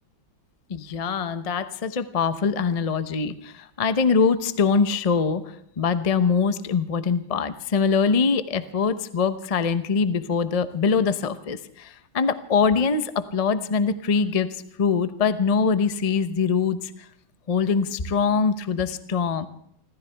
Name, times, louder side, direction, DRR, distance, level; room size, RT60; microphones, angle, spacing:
voice 1, 0.7-5.4 5.8-14.5 14.8-16.9 17.5-19.5, left 5 dB, 70° left, 11 dB, 0.3 m, -23 dB
29.5 x 14.0 x 3.4 m, 0.70 s
omnidirectional pair, 2.2 m